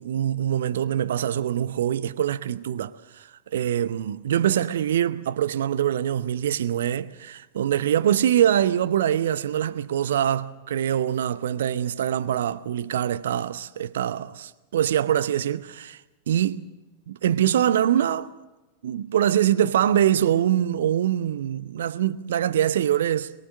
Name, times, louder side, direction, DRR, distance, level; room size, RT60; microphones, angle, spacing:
voice 1, 0.0-16.0 16.3-16.6 17.1-18.3 18.8-23.3, right 10 dB, 60° right, 0.8 m, -24 dB
23.0 x 22.5 x 6.4 m
figure-of-eight pair, 90°, 0 cm